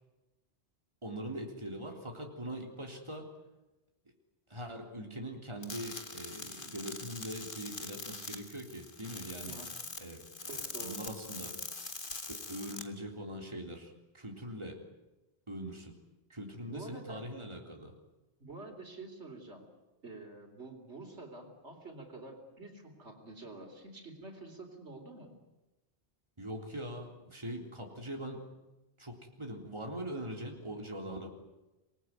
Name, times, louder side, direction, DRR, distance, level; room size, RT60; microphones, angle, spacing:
voice 1, 1.0-3.3 4.5-9.6 10.0-11.5 12.5-14.8 15.5-15.9 16.3-17.9 26.4-28.5 29.0-31.3, right 1 dB, 25° right, 1 dB, 3.7 m, -42 dB
sound 1, 5.6-12.8, left 3 dB, 50° left, 2.0 m, -43 dB
voice 2, 10.5-11.1 16.6-17.3 18.4-19.6 20.0-25.4, right 2 dB, 80° right, 4 dB, 4.2 m, -48 dB
27.0 x 20.5 x 9.5 m, 1.0 s
omnidirectional pair, 1.1 m